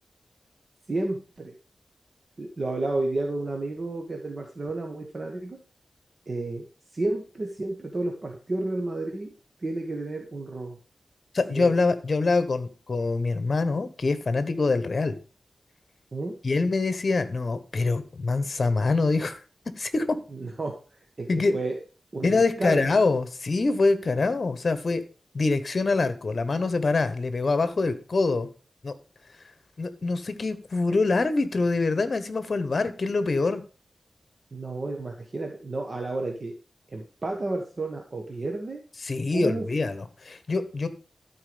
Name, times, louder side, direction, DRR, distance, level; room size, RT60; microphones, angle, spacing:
voice 1, 0.9-1.5 2.4-5.6 6.3-6.6 6.9-9.3 9.6-10.8 11.5-11.7 16.1-16.4 20.4-21.8 22.1-22.9 34.5-36.5 36.9-38.8 39.3-39.6, right 2 dB, 45° right, 2 dB, 1.4 m, -31 dB
voice 2, 11.3-15.1 16.4-19.4 19.8-20.2 21.3-21.5 22.2-25.0 25.3-28.5 28.8-28.9 29.8-33.6 39.0-40.9, left 3 dB, 50° left, 12 dB, 1.1 m, -25 dB
12.5 x 4.7 x 5.2 m, 0.36 s
wide cardioid pair, 100°, 0 cm